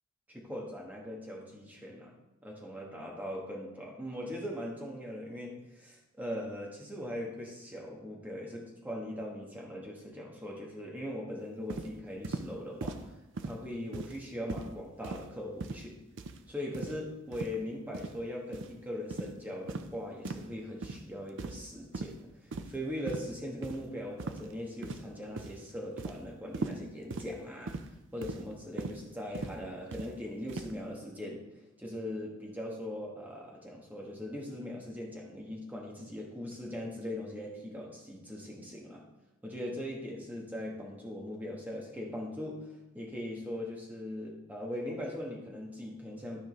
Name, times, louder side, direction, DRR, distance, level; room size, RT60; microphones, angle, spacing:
voice 1, 0.3-2.1 2.4-16.0 16.5-22.3 22.6-27.8 28.1-31.5 31.8-39.0 39.4-46.4, left 1 dB, 10° right, -2 dB, 1.2 m, -40 dB
sound 1, 11.7-11.9 12.2-12.5 12.8-13.0 13.4-13.6 13.9-14.2 14.5-14.7 15.0-15.3 15.6-15.9 16.2-16.4 16.7-17.0 17.3-17.5 17.9-18.1 18.5-18.7 19.1-19.3 19.7-19.9 20.2-20.5 20.8-21.0 21.4-21.7 21.9-22.1 22.5-22.8 23.1-23.3 23.6-23.8 24.2-24.5 24.8-25.1 25.4-25.6 26.0-26.2 26.5-26.8 27.1-27.3 27.7-27.9 28.2-28.4 28.8-29.0 29.3-29.6 29.9-30.1 30.5-30.7, right 3 dB, 55° right, 0.5 m, -38 dB
12.5 x 5.1 x 3.1 m, 0.95 s
head